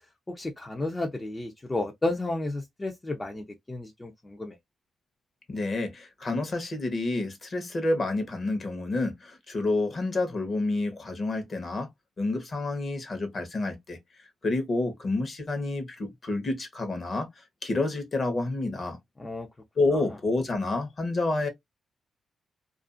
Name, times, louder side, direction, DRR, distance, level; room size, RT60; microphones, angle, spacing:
voice 1, 0.4-4.6 19.2-19.5 19.9-20.2, left 2 dB, 20° left, 0.6 m, -32 dB
voice 2, 5.5-11.9 12.2-14.0 14.4-17.3 17.6-19.0 19.8-21.5, left 2 dB, 45° left, 0.9 m, -29 dB
2.5 x 2.4 x 2.5 m
cardioid pair, 80°, 0 cm